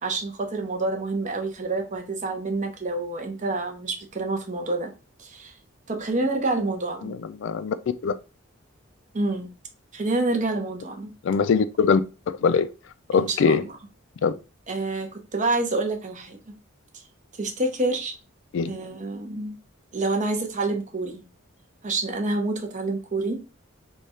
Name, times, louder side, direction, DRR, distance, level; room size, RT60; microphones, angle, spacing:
voice 1, 0.0-4.9 5.2-5.5 5.9-7.1 9.1-9.5 9.9-11.1 13.1-13.8 14.7-16.5 16.9-17.0 17.4-18.1 18.6-19.6 19.9-21.2 21.8-23.4, right 2 dB, 35° right, 0.7 m, -28 dB
voice 2, 7.4-7.7 8.0-8.1 11.2-12.0 12.3-12.7 13.1-13.6 14.2-14.4 18.5-18.7, left 5 dB, 60° left, 0.3 m, -21 dB
3.2 x 2.3 x 4.1 m
head